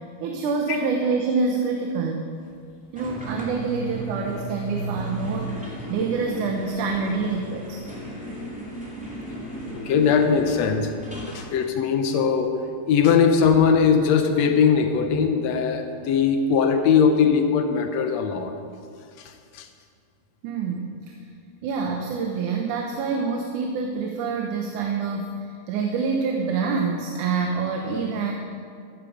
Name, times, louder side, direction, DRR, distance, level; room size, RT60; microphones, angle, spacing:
voice 1, 0.2-2.3 2.9-7.8 20.4-21.1 21.6-28.3, right 4 dB, 85° right, 2 dB, 2.5 m, -26 dB
sound 1, 2.9-11.5, right 1 dB, 5° right, 1.9 m, -35 dB
voice 2, 9.9-12.6 12.9-18.6 19.2-19.7, left 6 dB, 70° left, 6 dB, 2.0 m, -20 dB
15.0 x 11.5 x 5.1 m, 2.3 s
omnidirectional pair, 3.5 m